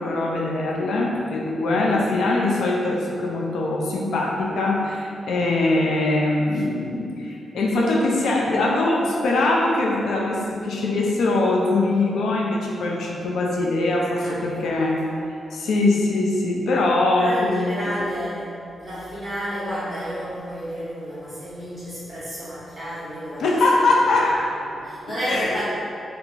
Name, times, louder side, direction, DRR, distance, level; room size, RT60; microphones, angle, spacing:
voice 1, 0.0-15.0 15.5-17.9 23.4-24.3 25.3-25.6, left 2 dB, 90° left, -2 dB, 0.3 m, -22 dB
voice 2, 14.2-15.0 17.2-18.5 18.8-23.8 24.2-25.6, equal, 15° right, -13 dB, 1.3 m, -31 dB
2.8 x 2.3 x 2.5 m, 2.6 s
wide cardioid pair, 165°, 0 cm